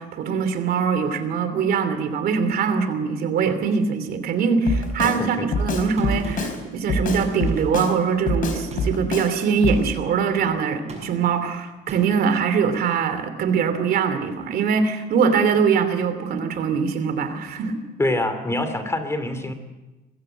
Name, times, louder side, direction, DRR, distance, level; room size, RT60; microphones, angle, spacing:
voice 1, 0.0-17.8, right 6 dB, 65° right, 9 dB, 2.8 m, -22 dB
Drum kit, 4.7-5.2 5.5-6.6 6.9-7.9 8.3-9.3 9.6-9.8, left 2 dB, 55° left, 4.4 m, -25 dB
voice 2, 5.0-5.5 18.0-19.5, left 1 dB, 15° left, 8 dB, 2.7 m, -25 dB
Gunshot gunfire, 6.0-6.6 7.2-7.9 8.7-9.1 9.7-10.1 10.9-11.4 11.9-12.3, right 4 dB, 40° right, 6.8 m, -38 dB
21.5 x 15.0 x 7.9 m, 1.1 s
cardioid pair, 110°, 17 cm